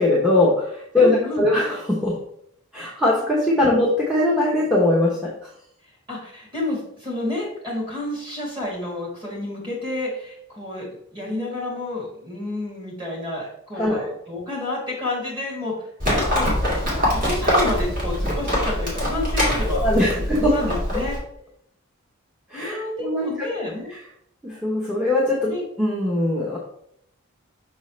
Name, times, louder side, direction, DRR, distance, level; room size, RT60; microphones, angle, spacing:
voice 1, 0.0-2.2 2.7-5.3 13.7-14.1 19.7-20.5 20.9-21.0 22.5-23.5 24.4-25.5 25.8-26.6, left 1 dB, 5° right, -4 dB, 0.9 m, -21 dB
voice 2, 0.9-1.5 3.6-3.8 6.1-15.7 16.3-16.5 17.1-21.2 22.5-23.9 25.4-25.6, left 2 dB, 25° right, -4 dB, 2.5 m, -30 dB
Livestock farm animals working animals, 16.0-21.2, equal, 40° right, 2.2 m, -23 dB
5.8 x 5.3 x 3.2 m, 0.73 s
head